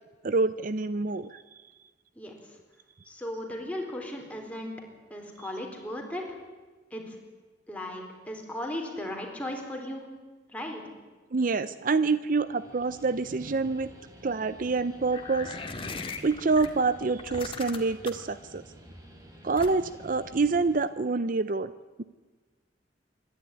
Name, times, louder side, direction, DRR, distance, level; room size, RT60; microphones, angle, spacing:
voice 1, 0.2-1.4 11.3-13.9 14.2-15.6 16.2-18.6 19.4-21.7 22.0-22.1, right 4 dB, 50° right, 14 dB, 0.6 m, -27 dB
voice 2, 3.1-4.7 5.1-6.4 6.9-7.2 7.7-10.1 10.5-10.8, left 1 dB, 10° left, 1 dB, 4.1 m, -36 dB
Guitar, 12.2-20.9, equal, 20° right, 3.7 m, -51 dB
sound 1, 15.1-16.7 17.2-18.3 19.6-20.0, left 4 dB, 30° left, 1.9 m, -38 dB
26.0 x 12.0 x 9.9 m, 1.3 s
head